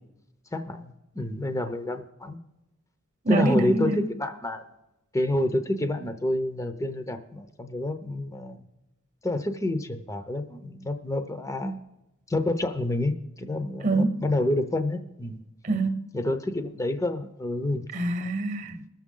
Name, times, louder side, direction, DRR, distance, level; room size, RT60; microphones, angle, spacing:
voice 1, 0.5-2.4 3.3-3.9 4.2-4.6 5.1-8.6 9.2-11.8 12.3-15.4 16.1-17.8, left 1 dB, 15° left, 0.7 m, -28 dB
voice 2, 3.2-4.1 13.8-14.2 15.6-16.1 17.9-18.9, right 2 dB, 35° right, 1.0 m, -25 dB
20.5 x 7.2 x 3.8 m
head